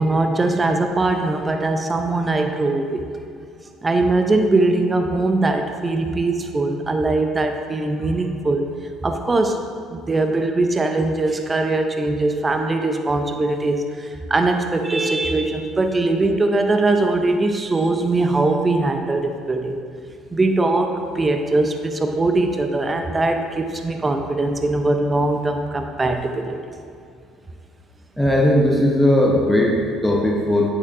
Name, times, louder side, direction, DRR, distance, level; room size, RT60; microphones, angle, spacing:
voice 1, 0.0-3.0 3.8-8.7 9.0-9.6 9.9-19.8 20.3-26.6, right 2 dB, 25° right, 5 dB, 0.6 m, -21 dB
voice 2, 28.2-30.7, left 1 dB, 5° left, -2 dB, 0.9 m, -17 dB
8.5 x 6.7 x 2.6 m, 2.3 s
hypercardioid pair, 65°, 0 cm